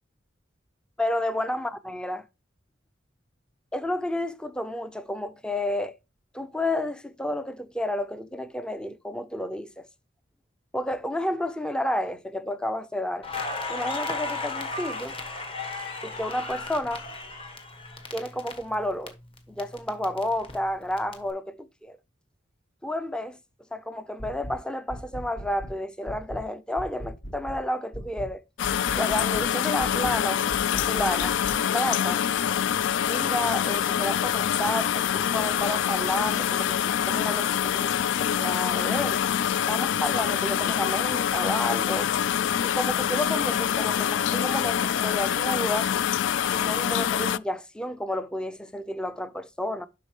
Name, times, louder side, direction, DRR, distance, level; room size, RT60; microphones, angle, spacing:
voice 1, 1.0-2.2 3.7-6.0 6.3-9.9 10.7-13.3 13.7-15.2 16.0-17.0 18.1-19.2 19.5-22.0 22.8-23.4 23.7-28.4 29.0-30.4 30.7-31.4 31.7-32.2 33.1-37.9 38.2-39.2 39.7-42.1 42.6-45.9 46.5-49.9, left 1 dB, 5° left, 0.4 m, -31 dB
Crackle, 13.2-19.1 19.4-21.1, left 3 dB, 30° left, 1.3 m, -35 dB
sound 1, 24.2-24.6 24.9-25.8 26.1-26.5 26.8-27.6 27.9-28.3 28.6-29.5 29.8-30.2 30.5-31.6, equal, 50° left, 1.2 m, -38 dB
sound 2, 28.6-47.4, left 9 dB, 70° left, 0.3 m, -25 dB
12.0 x 4.3 x 3.1 m
head